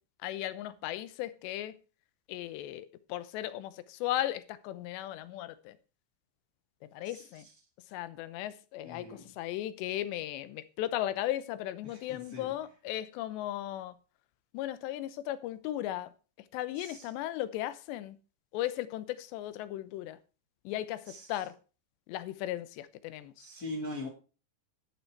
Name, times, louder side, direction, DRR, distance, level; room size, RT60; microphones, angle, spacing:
voice 1, 0.2-1.7 2.3-5.8 6.9-7.4 7.9-13.9 14.5-16.1 16.5-18.2 18.5-20.2 20.6-21.5 22.1-23.5, left 13 dB, 80° left, 3.0 m, -36 dB
voice 2, 7.0-7.5 8.8-9.4 11.8-12.6 16.7-17.1 21.0-21.5 23.4-24.1, left 1 dB, 40° left, 1.3 m, -43 dB
11.5 x 7.9 x 4.7 m
omnidirectional pair, 5.1 m